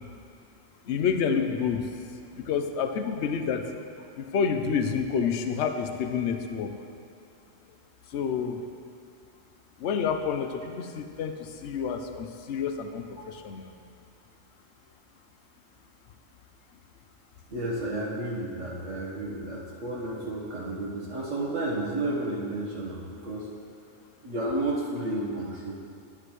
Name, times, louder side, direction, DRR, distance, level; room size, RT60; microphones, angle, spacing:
voice 1, 0.9-1.9 2.4-3.7 4.2-6.7 8.1-8.6 9.8-13.7, left 6 dB, 65° left, 6 dB, 0.9 m, -29 dB
voice 2, 17.5-23.5 24.2-25.8, right 1 dB, 70° right, -6 dB, 1.5 m, -32 dB
12.5 x 9.8 x 3.1 m, 2.4 s
omnidirectional pair, 1.3 m